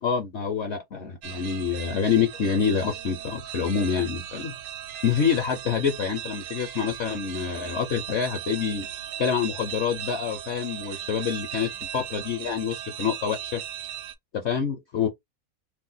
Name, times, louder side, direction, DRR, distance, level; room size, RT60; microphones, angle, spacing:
voice 1, 0.0-4.5 5.0-8.9 9.2-13.6 14.3-15.1, left 7 dB, 60° left, 0.7 m, -27 dB
sound 1, 1.2-14.1, right 11 dB, 75° right, 1.0 m, -38 dB
2.7 x 2.1 x 3.7 m
omnidirectional pair, 1.7 m